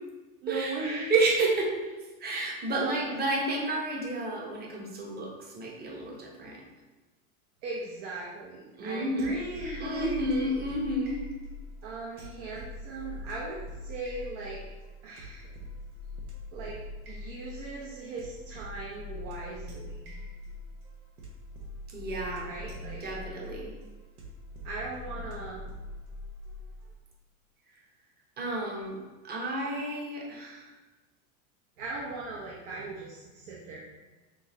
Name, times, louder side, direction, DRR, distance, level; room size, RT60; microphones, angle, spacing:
voice 1, 0.4-1.1 2.7-3.4 7.6-10.5 11.8-14.6 15.0-15.5 16.5-16.8 17.1-20.1 22.3-23.1 24.6-25.6 31.8-33.8, right 3 dB, 60° right, -3 dB, 0.9 m, -38 dB
voice 2, 1.1-1.8 2.2-6.6 8.8-9.3 9.8-11.2 21.9-22.5 23.0-23.7 28.4-29.0 29.2-30.7, right 2 dB, 25° right, -2 dB, 0.9 m, -30 dB
sound 1, 9.2-26.9, left 2 dB, 85° right, 1.1 m, -43 dB
6.4 x 2.7 x 3.0 m, 1.2 s
supercardioid pair, 125°, 42 cm